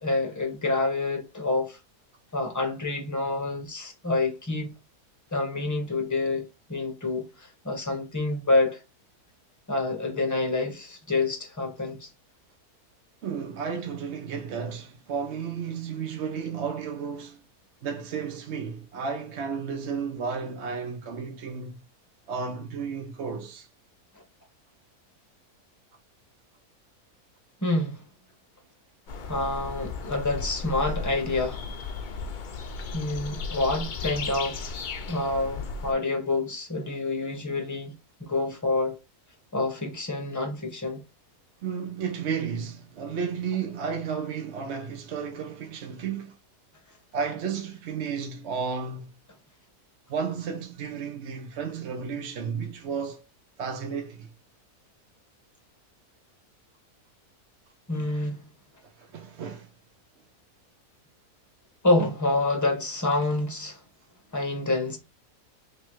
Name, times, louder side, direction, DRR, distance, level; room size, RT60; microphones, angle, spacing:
voice 1, 0.0-1.8 2.3-4.7 5.3-8.8 9.7-12.1 27.6-28.0 29.3-31.6 32.9-34.7 35.1-37.9 38.2-39.0 39.5-41.0 57.9-58.4 61.8-63.8 64.3-65.0, left 2 dB, 15° left, 0.9 m, -27 dB
voice 2, 13.2-17.4 17.8-21.8 22.3-23.7 29.5-29.6 41.6-46.4 47.1-49.1 50.1-53.2 53.6-54.3 58.8-59.7, right 6 dB, 55° right, 0.8 m, -33 dB
sound 1, 29.1-35.9, left 4 dB, 65° left, 0.4 m, -35 dB
3.3 x 3.1 x 4.4 m
omnidirectional pair, 1.6 m